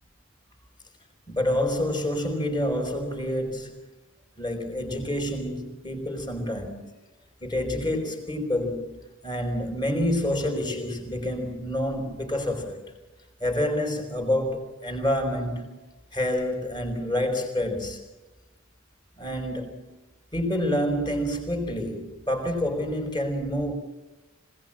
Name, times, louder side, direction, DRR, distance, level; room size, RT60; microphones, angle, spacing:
voice 1, 1.3-3.9 4.4-6.9 7.4-12.9 13.4-15.8 16.1-18.0 19.2-20.0 20.3-23.8, left 1 dB, 20° left, 4.3 m, -28 dB
25.5 x 18.0 x 8.7 m
head